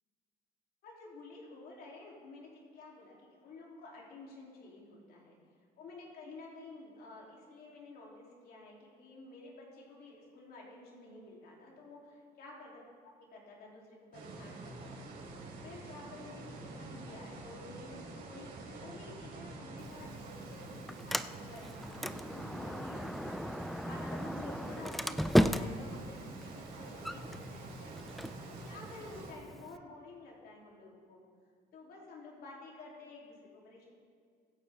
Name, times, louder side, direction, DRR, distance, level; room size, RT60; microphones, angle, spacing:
voice 1, 0.8-5.4 5.8-12.7 13.2-28.0 28.5-31.2 31.7-33.4 33.6-33.9, left 2 dB, 65° left, -3 dB, 3.3 m, -51 dB
sound 1, 14.1-29.3, right 3 dB, 70° right, 3.9 m, -47 dB
Sliding door, 19.8-29.8, equal, ahead, 0.4 m, -36 dB
23.0 x 9.1 x 3.6 m, 2.1 s
cardioid pair, 110°, 17 cm